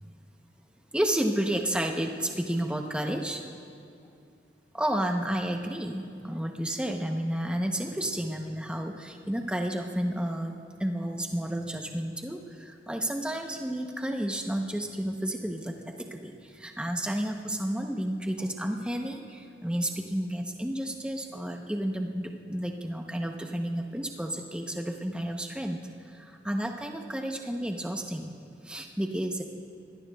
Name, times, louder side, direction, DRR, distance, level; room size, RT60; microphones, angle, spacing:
voice 1, 0.9-3.4 4.7-10.5 10.8-25.8 26.1-28.3 28.6-29.4, right 1 dB, 5° right, 3 dB, 0.7 m, -31 dB
22.0 x 18.0 x 2.3 m, 2.5 s
head